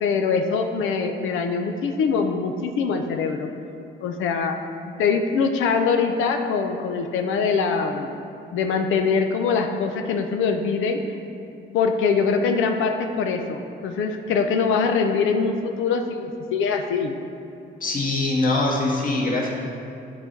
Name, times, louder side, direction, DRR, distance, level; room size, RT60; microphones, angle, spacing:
voice 1, 0.0-3.5 4.0-4.6 5.0-8.1 8.5-11.0 11.7-17.1, left 5 dB, 85° left, 5 dB, 0.6 m, -23 dB
voice 2, 17.8-19.5, left 2 dB, 45° left, -3 dB, 1.8 m, -23 dB
10.5 x 4.0 x 4.5 m, 2.6 s
cardioid pair, 90°, 20 cm